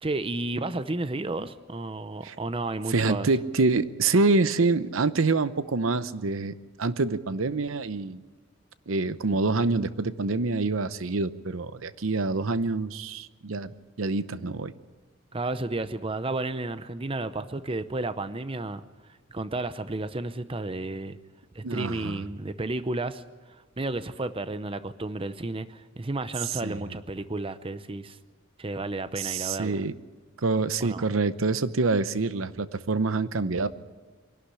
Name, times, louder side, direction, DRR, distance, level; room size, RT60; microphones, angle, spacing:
voice 1, 0.0-3.3 15.3-18.8 19.3-21.2 21.5-23.2 23.8-28.2 28.6-29.8 30.8-31.0, right 2 dB, 25° right, 12 dB, 0.7 m, -32 dB
voice 2, 2.9-8.2 8.9-14.7 21.6-22.2 26.6-26.9 29.2-29.9 30.4-33.7, right 3 dB, 80° right, 14 dB, 0.8 m, -26 dB
24.0 x 11.5 x 9.8 m, 1.4 s
head